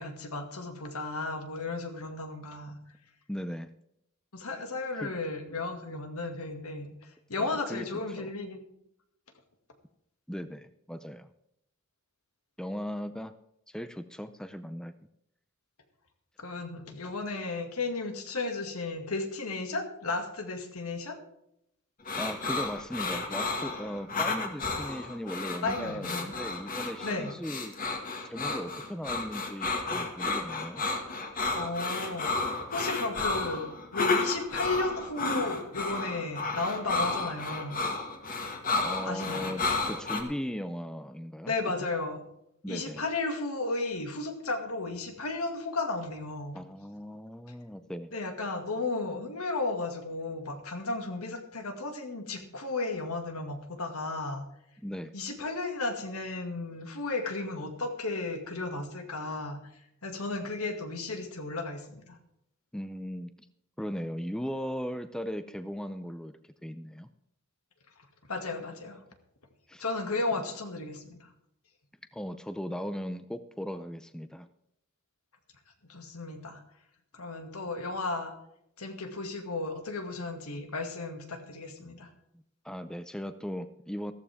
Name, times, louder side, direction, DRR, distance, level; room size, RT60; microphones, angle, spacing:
voice 1, 0.0-2.8 4.3-6.9 7.3-8.6 16.4-21.2 25.6-26.3 27.0-27.3 31.6-37.8 39.0-39.6 41.5-42.2 42.7-46.6 48.1-54.4 55.1-59.6 60.0-62.2 68.3-69.0 69.8-71.3 75.9-76.6 77.1-78.3 78.8-82.1, left 3 dB, 75° left, 5 dB, 2.2 m, -34 dB
voice 2, 3.3-3.7 4.9-5.1 7.4-7.9 8.2-8.3 10.3-11.3 12.6-13.3 13.7-14.9 22.2-27.8 28.3-30.8 38.8-41.5 42.6-43.1 46.5-48.1 54.8-55.1 62.7-63.3 63.8-67.1 69.7-69.8 72.1-74.5 82.6-84.1, equal, 5° left, 11 dB, 0.5 m, -38 dB
sound 1, 22.0-40.2, left 3 dB, 40° left, 2.0 m, -32 dB
14.5 x 14.0 x 3.6 m, 0.77 s
head